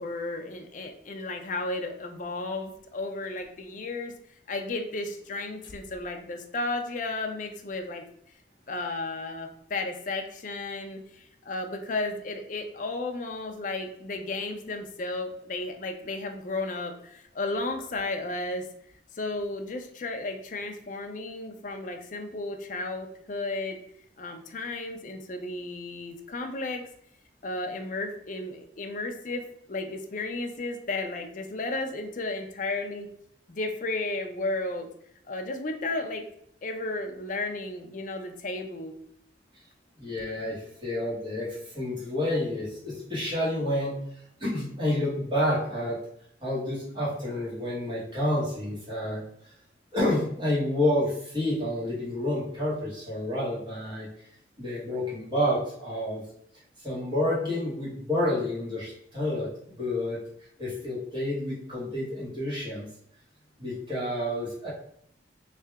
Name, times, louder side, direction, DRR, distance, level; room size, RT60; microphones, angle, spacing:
voice 1, 0.0-4.1 4.5-8.0 8.7-18.6 19.1-23.8 24.2-26.9 27.4-33.1 33.5-34.9 35.3-36.2 36.6-39.0, left 2 dB, 45° left, 4 dB, 0.5 m, -33 dB
voice 2, 40.0-44.0 44.4-46.0 46.4-49.2 49.9-54.1 54.6-56.2 56.8-60.2 60.6-62.9 63.6-64.7, left 1 dB, 25° right, -7 dB, 1.4 m, -29 dB
3.3 x 2.8 x 3.4 m, 0.69 s
head